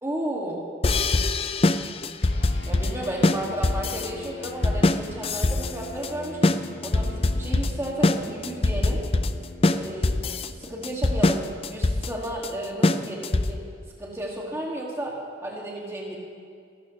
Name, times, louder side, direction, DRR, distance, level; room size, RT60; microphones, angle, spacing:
voice 1, 0.0-0.7 2.7-6.6 6.8-9.0 9.7-13.7 14.0-16.2, right 1 dB, 15° right, -2 dB, 2.2 m, -33 dB
sound 1, 0.8-13.7, left 2 dB, 30° left, 0.5 m, -23 dB
sound 2, 2.2-11.9, left 2 dB, 80° left, 2.2 m, -42 dB
27.5 x 13.0 x 3.2 m, 2.3 s
head